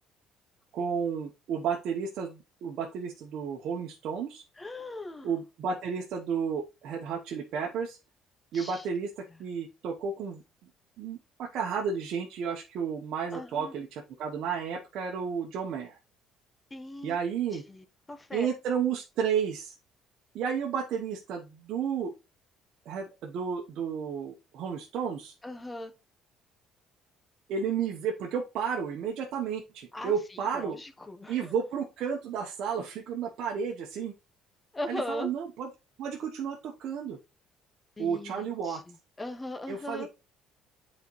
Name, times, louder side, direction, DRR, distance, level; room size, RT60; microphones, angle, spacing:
voice 1, 0.7-4.4 5.2-8.0 8.5-9.1 9.4-10.4 11.0-16.0 17.0-17.6 18.3-19.7 20.3-22.1 22.9-25.3 27.5-30.8 31.3-34.1 34.9-35.7 36.0-37.2 38.0-38.8 39.7-40.2, right 7 dB, 65° right, 0.9 m, -32 dB
voice 2, 4.5-5.3 8.5-8.9 13.3-13.7 16.7-17.2 17.5-18.5 25.4-25.9 29.9-31.5 34.7-35.3 38.0-40.1, left 1 dB, 20° left, 0.9 m, -39 dB
9.1 x 4.3 x 3.1 m
supercardioid pair, 85°, 0 cm